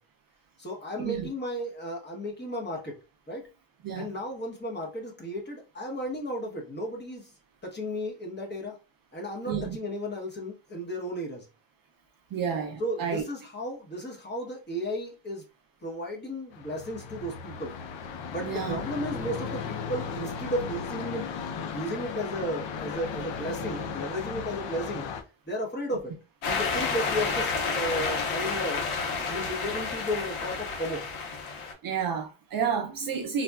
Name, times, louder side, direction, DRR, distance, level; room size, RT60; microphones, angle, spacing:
voice 1, 0.6-3.0 3.3-3.4 3.9-7.3 7.6-8.8 9.1-11.5 12.8-15.4 15.8-17.7 18.3-21.3 21.6-25.1 25.5-26.1 26.4-28.8 29.2-31.0, equal, 20° left, 0.9 m, -34 dB
voice 2, 12.3-13.2 18.4-18.8 31.8-33.4, right 7 dB, 45° right, 0.5 m, -30 dB
sound 1, 16.5-25.2, left 6 dB, 65° left, 0.6 m, -36 dB
sound 2, 26.4-31.7, left 4 dB, 80° left, 1.1 m, -30 dB
4.0 x 2.2 x 2.3 m
cardioid pair, 160°, 49 cm